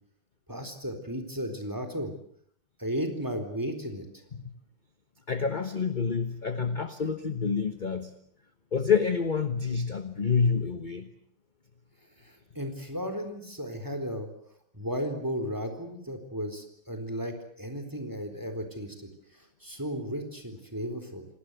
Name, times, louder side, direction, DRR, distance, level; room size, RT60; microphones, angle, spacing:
voice 1, 0.5-2.1 2.8-4.1 12.2-14.3 14.7-19.1 19.6-21.3, equal, 10° right, 7 dB, 3.9 m, -34 dB
voice 2, 5.3-8.1 8.7-11.1, left 5 dB, 30° left, 9 dB, 1.0 m, -28 dB
27.0 x 19.0 x 8.1 m, 0.64 s
omnidirectional pair, 2.3 m